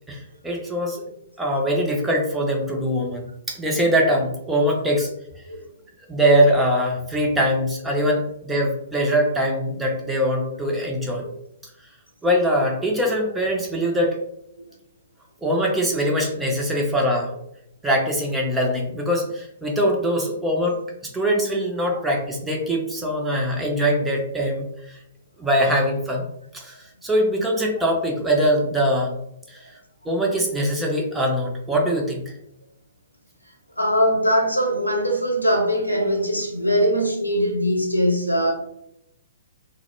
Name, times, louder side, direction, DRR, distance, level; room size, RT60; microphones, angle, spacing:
voice 1, 0.1-1.1 1.4-3.2 3.5-5.1 6.1-11.2 12.2-14.2 15.4-17.3 17.8-25.0 25.4-26.3 26.5-29.2 29.5-29.7 30.0-32.3, equal, 10° right, -1 dB, 0.5 m, -22 dB
voice 2, 33.8-38.5, equal, 90° left, 0 dB, 0.6 m, -21 dB
2.1 x 2.0 x 3.0 m, 0.77 s
figure-of-eight pair, 115°, 0 cm